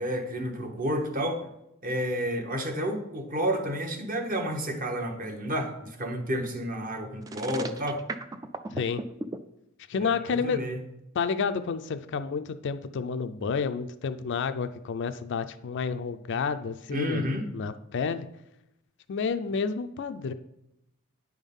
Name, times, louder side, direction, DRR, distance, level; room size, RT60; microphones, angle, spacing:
voice 1, 0.0-1.5 1.8-8.0 10.0-10.8 16.3-16.4 16.9-17.4, equal, 40° right, 4 dB, 1.0 m, -30 dB
sound 1, 7.2-9.4, right 2 dB, 15° right, 0.3 m, -35 dB
voice 2, 8.7-9.0 9.9-10.6 11.2-18.3 19.1-20.3, left 5 dB, 55° left, 10 dB, 0.4 m, -30 dB
9.3 x 3.6 x 5.4 m, 0.84 s
head